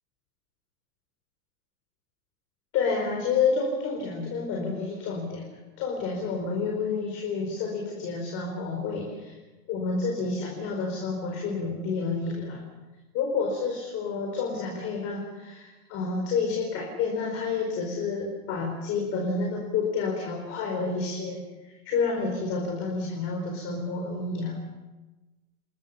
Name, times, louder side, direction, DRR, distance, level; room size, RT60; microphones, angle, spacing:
voice 1, 2.7-5.4 5.8-9.3 9.7-12.7 13.1-24.6, left 4 dB, 30° left, 0 dB, 4.6 m, -29 dB
29.0 x 21.5 x 5.7 m, 1.1 s
supercardioid pair, 150°, 44 cm